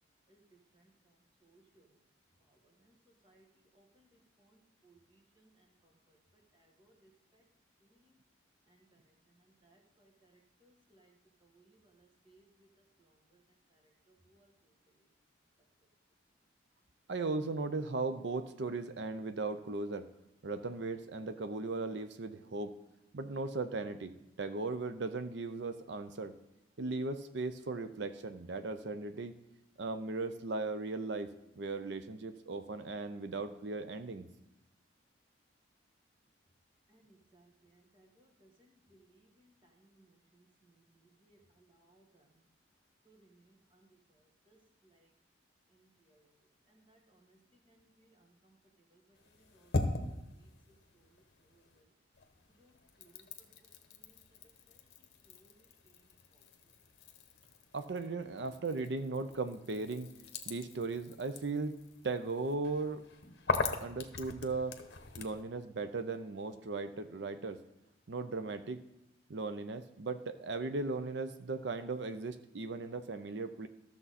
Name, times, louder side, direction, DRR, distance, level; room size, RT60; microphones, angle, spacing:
voice 1, 1.4-1.9 2.8-2.9 3.2-3.5 3.7-4.1 4.4-6.2 6.5-7.4 8.0-8.1 8.7-9.1 9.6-11.1 11.4-12.7 13.1-13.4 13.7-13.8 14.1-14.5 36.9-40.7 41.0-42.3 43.0-43.9 44.5-44.6 44.8-45.1 45.7-46.3 46.7-47.4 47.7-48.6 48.9-49.0 49.5-50.1 50.4-50.5 51.5-51.9 52.6-53.5 53.9-54.2 54.7-54.8 55.3-55.5 56.3-56.4, right 2 dB, 25° right, 2 dB, 1.5 m, -67 dB
voice 2, 17.1-20.1 20.4-22.7 23.1-24.1 24.4-26.3 26.8-29.4 29.8-31.3 31.6-34.3 57.7-60.1 60.5-61.8 62.0-63.0 63.8-64.8 65.2-67.6 68.1-68.8 69.3-73.7, right 3 dB, 65° right, 10 dB, 0.6 m, -37 dB
sound 1, 49.1-51.8 52.1-65.4, left 3 dB, 55° left, 1.0 m, -41 dB
13.5 x 6.8 x 4.1 m, 0.91 s
head